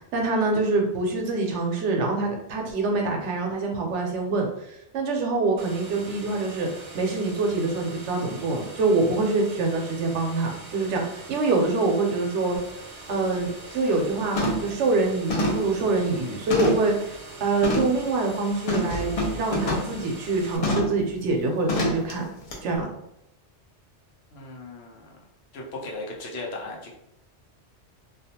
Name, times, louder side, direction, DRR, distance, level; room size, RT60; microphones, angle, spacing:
voice 1, 0.1-4.5 4.9-6.7 6.9-12.6 13.1-13.5 13.7-17.1 17.4-22.2 22.6-22.9, right 3 dB, 90° right, 2 dB, 0.9 m, -25 dB
sound 1, 5.6-20.6, right 2 dB, 55° right, 0.5 m, -43 dB
sound 2, 12.6-12.7 13.1-13.3 13.7-14.0 14.4-14.8 15.3-17.0 17.6-18.0 18.7-20.0 20.6-21.0 21.7-22.1 22.5-22.6, left 1 dB, 45° left, 0.5 m, -27 dB
voice 2, 24.3-25.2 25.5-26.9, left 2 dB, 70° left, -1 dB, 0.9 m, -37 dB
2.4 x 2.2 x 2.7 m, 0.81 s
omnidirectional pair, 1.2 m